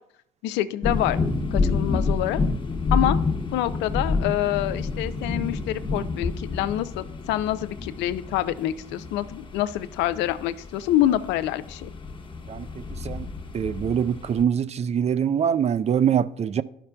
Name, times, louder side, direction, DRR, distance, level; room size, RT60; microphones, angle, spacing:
voice 1, 0.4-1.2 1.5-2.4 2.9-3.2 3.5-11.9, left 13 dB, 80° left, 0.5 m, -26 dB
sound 1, 0.8-14.4, left 3 dB, 25° left, 1.0 m, -29 dB
voice 2, 12.5-13.3 13.5-16.6, right 8 dB, 35° right, 0.4 m, -24 dB
12.5 x 5.8 x 2.2 m
supercardioid pair, 60°, 18 cm